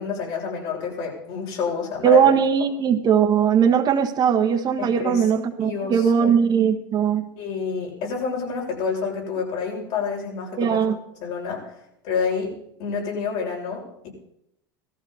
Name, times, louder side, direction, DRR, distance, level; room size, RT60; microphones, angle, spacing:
voice 1, 0.0-2.2 4.8-5.3 5.6-6.3 7.4-10.8 11.2-11.7 12.0-14.1, left 5 dB, 60° left, -1 dB, 6.8 m, -28 dB
voice 2, 2.0-7.3 10.6-11.0, right 7 dB, 35° right, 6 dB, 1.3 m, -19 dB
17.0 x 14.0 x 4.2 m, 0.76 s
hypercardioid pair, 105°, 12 cm